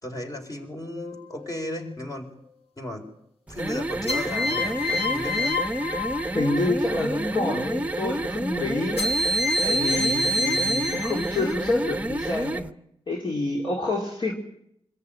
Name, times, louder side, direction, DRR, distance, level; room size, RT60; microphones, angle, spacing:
voice 1, 0.0-2.3 2.8-3.1 3.5-5.6, left 1 dB, 40° left, 3 dB, 4.4 m, -35 dB
sound 1, 1.0-1.5 4.1-6.7 9.0-11.5, left 1 dB, 90° left, 1.7 m, -27 dB
sound 2, 3.5-12.7, right 1 dB, 15° right, 0.8 m, -29 dB
voice 2, 6.3-9.2 9.6-12.7 13.1-14.3, left 2 dB, 55° left, -2 dB, 3.4 m, -27 dB
25.0 x 14.0 x 9.0 m, 0.77 s
cardioid pair, 65°, 10 cm